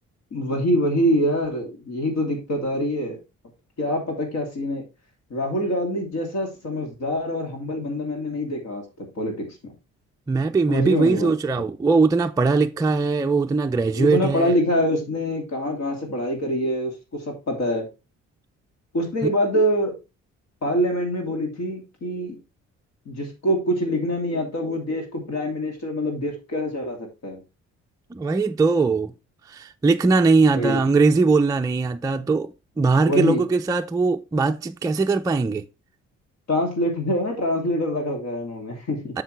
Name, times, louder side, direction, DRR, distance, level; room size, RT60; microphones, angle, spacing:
voice 1, 0.3-3.2 3.8-4.8 5.3-9.6 10.7-11.3 11.6-11.7 13.9-17.9 18.9-20.0 20.6-22.4 23.1-27.4 30.6-30.8 33.1-33.4 36.5-39.1, equal, 65° left, 2.7 m, -25 dB
voice 2, 10.3-14.5 28.1-29.1 29.5-35.7 39.1-39.2, right 4 dB, 10° right, 0.4 m, -20 dB
7.1 x 6.6 x 3.3 m
cardioid pair, 90°, 30 cm